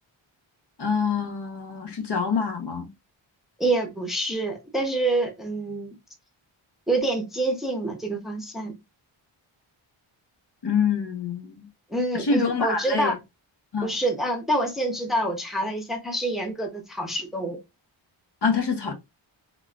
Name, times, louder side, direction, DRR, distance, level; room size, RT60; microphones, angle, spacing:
voice 1, 0.8-2.9 10.6-11.7 12.1-13.1 13.7-13.9 18.4-18.9, left 5 dB, 55° left, 0.9 m, -25 dB
voice 2, 3.6-6.0 6.9-8.7 11.9-13.2 13.8-17.6, right 2 dB, ahead, 0.8 m, -27 dB
4.0 x 2.4 x 2.3 m
wide cardioid pair, 90°, 50 cm